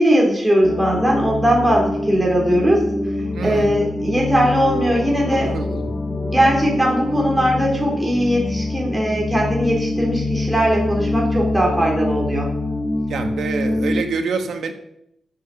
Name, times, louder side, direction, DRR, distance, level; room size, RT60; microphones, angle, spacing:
voice 1, 0.0-2.9 3.4-5.8 6.2-12.5, equal, 10° right, -2 dB, 3.6 m, -19 dB
sound 1, 0.6-14.0, left 2 dB, 25° left, 1.4 m, -25 dB
voice 2, 3.3-3.7 5.3-6.0 13.1-14.7, right 5 dB, 85° right, 6 dB, 1.6 m, -26 dB
12.5 x 7.9 x 6.7 m, 0.80 s
cardioid pair, 100°, 0 cm